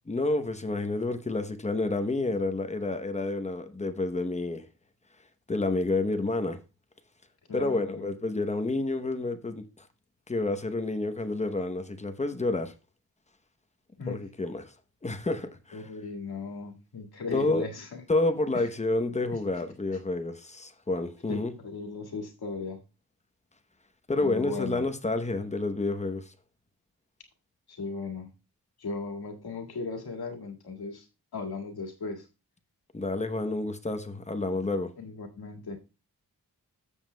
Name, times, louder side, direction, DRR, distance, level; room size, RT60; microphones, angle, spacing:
voice 1, 0.1-4.7 5.5-6.6 7.5-9.9 10.3-12.7 14.1-14.7 15.0-15.9 17.3-17.7 18.1-21.5 24.1-26.3 32.9-34.9, left 2 dB, 20° left, 0.8 m, -29 dB
voice 2, 7.5-8.1 14.0-14.2 15.7-17.9 18.5-18.7 19.3-19.4 21.3-22.8 24.2-24.9 27.7-28.3 28.8-31.1 31.3-32.2 35.0-35.8, left 4 dB, 85° left, 2.0 m, -37 dB
13.5 x 7.2 x 2.2 m
wide cardioid pair, 135°, 37 cm